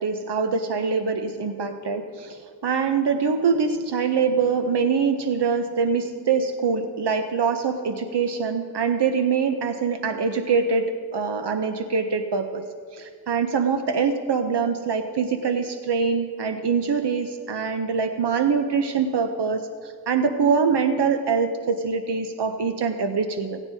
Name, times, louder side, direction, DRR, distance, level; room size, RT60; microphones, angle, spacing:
voice 1, 0.0-12.6 12.9-23.6, right 5 dB, 85° right, 7 dB, 0.6 m, -24 dB
17.0 x 16.5 x 2.7 m, 2.2 s
wide cardioid pair, 50°, 40 cm